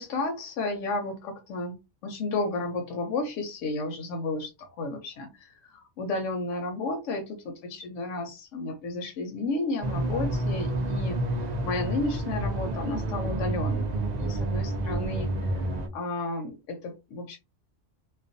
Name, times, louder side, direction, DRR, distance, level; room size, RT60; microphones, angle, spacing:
voice 1, 0.0-1.8 2.0-13.9 14.2-15.6 15.9-17.4, left 2 dB, 80° left, 0.9 m, -32 dB
sound 1, 9.8-15.9, right 1 dB, 75° right, 0.4 m, -29 dB
2.4 x 2.2 x 2.5 m
omnidirectional pair, 1.3 m